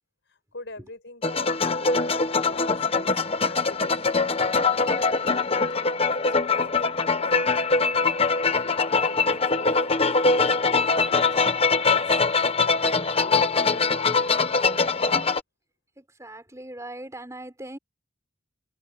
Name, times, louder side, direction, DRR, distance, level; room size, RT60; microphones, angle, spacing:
voice 1, 0.3-3.2 3.5-4.6 5.0-7.5 8.1-12.2 12.6-15.2, left 2 dB, 55° left, 6.6 m, -44 dB
sound 1, 1.2-15.4, left 4 dB, 30° left, 1.1 m, -22 dB
voice 2, 16.0-17.8, right 1 dB, 15° right, 6.1 m, -40 dB
head